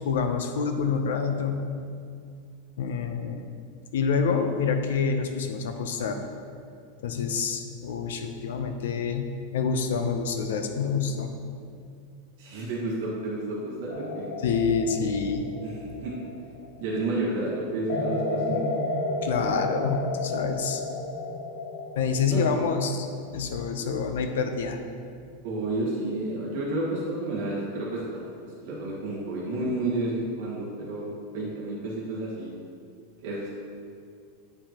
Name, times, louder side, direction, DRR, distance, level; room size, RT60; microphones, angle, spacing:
voice 1, 0.0-1.7 2.8-3.5 3.9-6.2 7.0-9.3 9.5-11.3 14.4-15.4 19.2-20.8 21.9-23.1 23.3-24.8, left 5 dB, 90° left, 6 dB, 0.6 m, -27 dB
voice 2, 12.4-14.3 15.6-16.1 16.8-18.7 22.3-22.7 25.4-31.1 31.3-32.5 33.2-33.5, right 2 dB, 50° right, -6 dB, 1.4 m, -31 dB
sound 1, 13.9-16.9 17.9-22.2, left 2 dB, 70° left, 1.0 m, -32 dB
9.2 x 5.0 x 2.9 m, 2.3 s
supercardioid pair, 180°, 0 cm